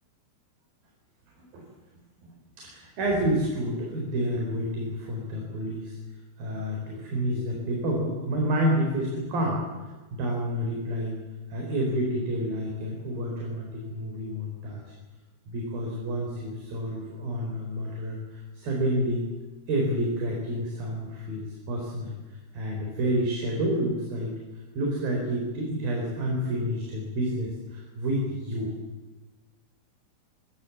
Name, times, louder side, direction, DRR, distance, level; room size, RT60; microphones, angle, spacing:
voice 1, 2.6-6.0 6.4-9.6 10.1-11.2 11.5-14.8 15.5-19.3 19.7-22.1 22.5-24.4 24.7-28.7, equal, 45° right, -1 dB, 6.0 m, -29 dB
25.0 x 25.0 x 7.3 m, 1.2 s
omnidirectional pair, 5.8 m